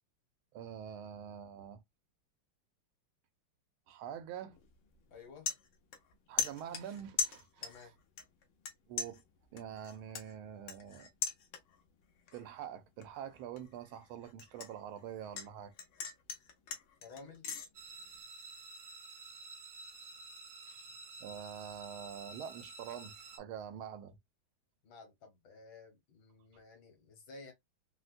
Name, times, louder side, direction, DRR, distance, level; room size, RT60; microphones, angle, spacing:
voice 1, 0.5-1.8 3.9-4.6 6.3-7.9 8.9-9.2 9.5-11.1 12.3-15.7 20.7-20.8 21.2-24.2, right 9 dB, 85° right, 1.5 m, -45 dB
sound 1, 4.5-4.7 5.1-6.1 6.4-7.9 8.2-8.7 9.0-11.9 12.3-12.6 13.0-15.5 15.8-17.7, left 6 dB, 90° left, 1.6 m, -39 dB
voice 2, 5.1-5.5 7.6-7.9 17.0-17.5 24.8-27.5, left 4 dB, 70° left, 1.9 m, -53 dB
sound 2, 17.7-23.4, right 3 dB, 65° right, 1.0 m, -51 dB
4.1 x 2.1 x 2.4 m
omnidirectional pair, 2.2 m